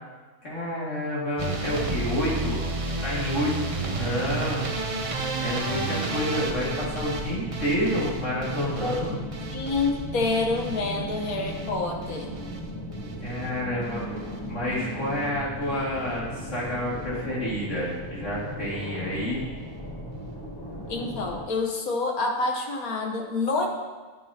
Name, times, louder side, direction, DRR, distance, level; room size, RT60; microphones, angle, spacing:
voice 1, 0.4-4.6 5.4-9.2 13.2-14.0 14.4-19.4, equal, 55° left, -7 dB, 2.7 m, -29 dB
sound 1, 1.4-13.5 13.8-14.4 14.7-15.3 15.6-15.8 16.2-16.3 16.5-16.6, right 3 dB, 40° right, 0.5 m, -32 dB
sound 2, 3.9-21.4, equal, 20° left, 1.0 m, -37 dB
voice 2, 8.8-9.2 9.5-12.3 20.9-23.7, left 3 dB, 70° left, 2 dB, 1.6 m, -27 dB
11.0 x 9.1 x 2.9 m, 1.3 s
omnidirectional pair, 1.6 m